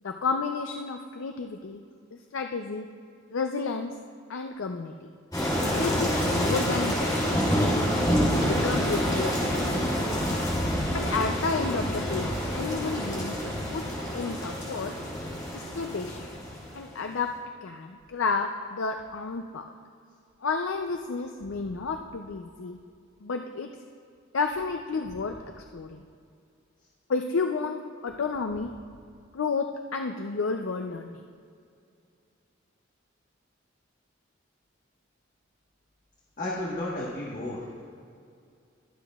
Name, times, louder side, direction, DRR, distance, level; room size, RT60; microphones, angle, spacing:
voice 1, 0.0-1.8 2.1-2.9 3.3-3.9 4.3-5.1 5.7-7.6 8.4-9.9 10.9-13.9 14.1-14.9 15.5-16.3 16.7-17.3 17.6-19.6 20.4-22.8 23.2-23.7 24.3-26.0 27.1-28.7 29.3-31.2, left 4 dB, 75° left, 5 dB, 0.5 m, -31 dB
sound 1, 5.3-17.0, equal, 20° left, 2.9 m, -27 dB
voice 2, 36.4-37.8, left 1 dB, 40° left, -6 dB, 1.3 m, -33 dB
21.5 x 8.0 x 2.4 m, 2.4 s
head